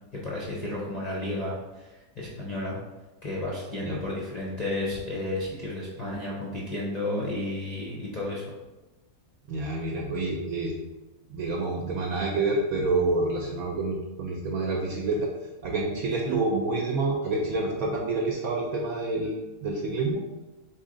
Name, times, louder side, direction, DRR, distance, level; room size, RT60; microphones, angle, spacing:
voice 1, 0.1-2.8 3.2-8.5 16.2-16.4, left 1 dB, 50° left, -5 dB, 0.5 m, -32 dB
voice 2, 9.5-10.8 11.3-15.3 15.6-19.3 19.6-20.2, right 3 dB, 70° right, 0 dB, 1.0 m, -28 dB
4.0 x 3.1 x 3.8 m, 1.1 s
omnidirectional pair, 1.7 m